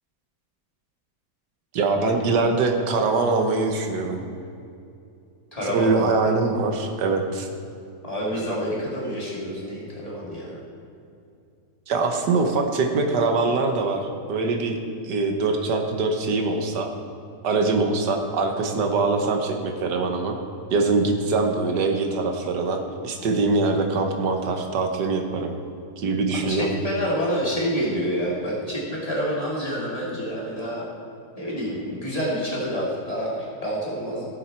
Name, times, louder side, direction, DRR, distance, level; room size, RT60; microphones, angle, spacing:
voice 1, 1.7-4.2 5.7-7.5 11.9-14.8 15.0-16.9 17.4-20.4 20.7-25.5 26.0-26.8, right 3 dB, 90° right, 4 dB, 1.7 m, -23 dB
voice 2, 5.5-6.2 8.0-10.6 26.3-30.8 31.3-34.3, equal, 20° left, -7 dB, 3.0 m, -28 dB
16.5 x 7.2 x 4.4 m, 2.5 s
omnidirectional pair, 1.7 m